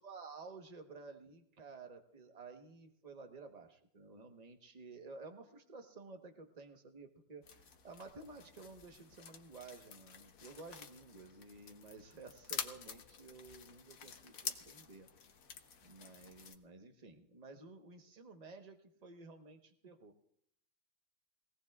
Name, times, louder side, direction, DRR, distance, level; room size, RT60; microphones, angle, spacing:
voice 1, 0.0-15.1 15.8-20.2, right 3 dB, 25° right, 5 dB, 0.9 m, -53 dB
sound 1, 7.4-16.5, left 6 dB, 50° left, 1.2 m, -49 dB
22.5 x 17.5 x 2.4 m, 0.72 s
omnidirectional pair, 2.2 m